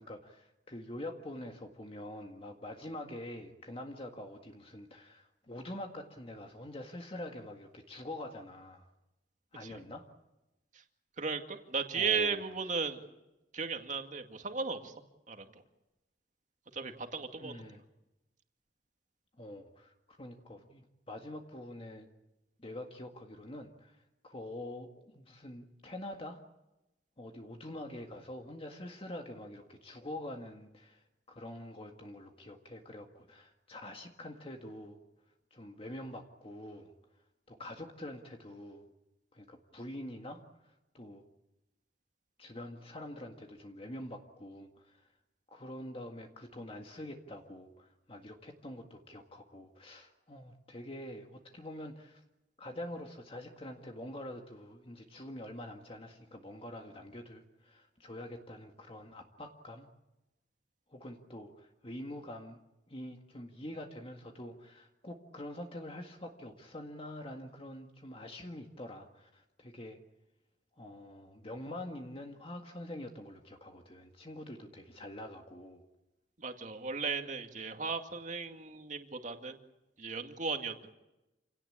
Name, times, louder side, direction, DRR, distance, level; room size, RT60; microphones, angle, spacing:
voice 1, 0.0-8.9 9.5-10.1 11.9-12.4 17.4-17.8 19.4-22.1 22.6-26.4 27.2-35.0 35.5-36.9 37.5-38.9 39.3-41.2 42.4-45.1 45.5-52.2 52.6-59.9 60.9-62.6 62.9-70.0 70.8-75.8, left 1 dB, 35° left, 3 dB, 1.9 m, -45 dB
voice 2, 11.2-13.0 13.5-14.9 15.3-15.5 16.7-17.6 76.4-79.6 80.0-81.0, right 5 dB, 45° right, 5 dB, 2.2 m, -36 dB
28.0 x 17.5 x 8.7 m, 0.96 s
head